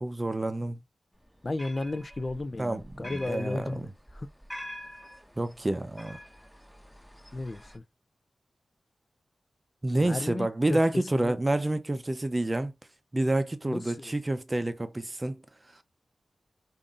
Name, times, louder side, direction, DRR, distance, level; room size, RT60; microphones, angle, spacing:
voice 1, 0.0-0.8 2.6-3.7 5.4-6.2 9.8-12.7 13.1-15.4, right 1 dB, 25° right, 0.6 m, -28 dB
sound 1, 1.2-7.8, equal, ahead, 0.9 m, -46 dB
voice 2, 1.4-4.3 7.3-7.8 10.0-11.4 13.6-14.1, left 2 dB, 40° left, 0.5 m, -34 dB
5.2 x 2.6 x 2.4 m
cardioid pair, 50°, 0 cm